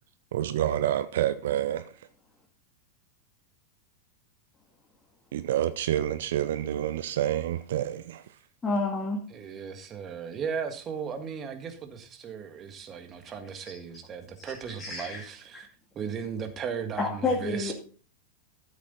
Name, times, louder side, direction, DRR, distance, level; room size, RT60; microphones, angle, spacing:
voice 1, 0.3-1.9 5.3-8.2, right 11 dB, 60° right, 0.6 m, -28 dB
voice 2, 8.6-9.2 14.8-15.2 17.0-17.7, left 3 dB, 15° left, 2.3 m, -28 dB
voice 3, 9.3-15.7 16.0-17.7, right 6 dB, 25° right, 1.8 m, -36 dB
13.5 x 7.4 x 4.0 m
figure-of-eight pair, 90°, 0 cm